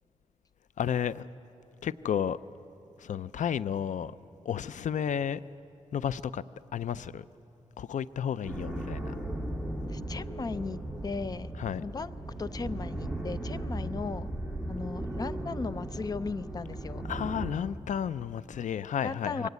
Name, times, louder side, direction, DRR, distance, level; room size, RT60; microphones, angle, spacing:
voice 1, 0.8-1.3 1.8-2.4 3.0-4.1 4.5-5.4 5.9-6.4 6.7-7.2 7.8-9.2 11.6-11.8 17.1-19.5, left 8 dB, 85° left, 0.4 m, -32 dB
sound 1, 8.4-17.5, right 1 dB, ahead, 2.0 m, -36 dB
voice 2, 9.9-11.5 11.8-12.1 12.4-14.3 14.7-17.0 18.5-18.7 19.0-19.5, left 4 dB, 30° left, 0.5 m, -36 dB
23.5 x 17.5 x 9.5 m
wide cardioid pair, 150°, 13 cm